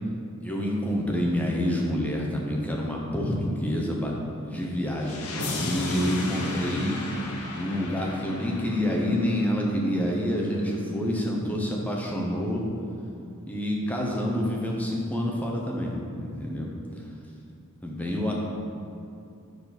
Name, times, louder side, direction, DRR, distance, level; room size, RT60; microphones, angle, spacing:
voice 1, 0.4-7.0 7.5-12.6 13.5-17.0 17.8-18.3, equal, 5° left, -2 dB, 0.6 m, -28 dB
sound 1, 5.0-9.9, left 2 dB, 90° left, 0.7 m, -34 dB
5.0 x 4.9 x 3.9 m, 2.6 s
head